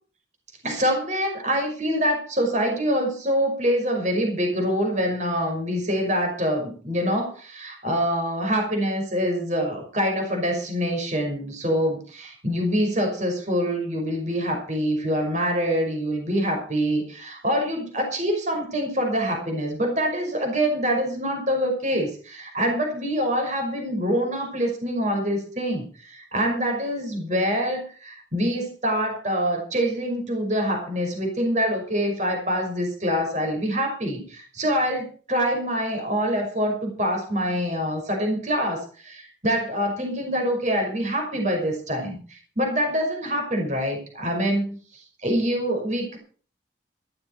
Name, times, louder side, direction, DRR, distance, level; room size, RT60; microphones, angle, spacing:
voice 1, 0.6-46.2, equal, 40° right, 3 dB, 5.6 m, -25 dB
14.5 x 14.5 x 4.7 m, 0.41 s
head